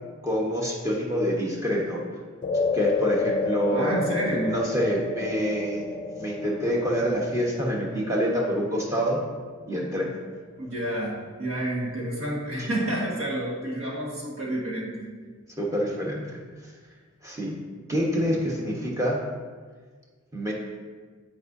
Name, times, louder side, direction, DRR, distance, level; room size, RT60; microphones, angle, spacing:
voice 1, 0.2-2.0 2.7-3.9 4.4-5.8 6.2-9.2 9.7-10.1 12.6-12.7 15.6-16.4 17.2-17.6 17.9-19.2 20.3-20.5, equal, 15° right, -3 dB, 1.0 m, -26 dB
sound 1, 2.4-10.9, left 3 dB, 35° left, 0.4 m, -31 dB
voice 2, 3.7-4.6 10.6-15.1 18.0-18.4, right 1 dB, 70° right, -4 dB, 1.8 m, -29 dB
10.5 x 4.7 x 2.7 m, 1.5 s
head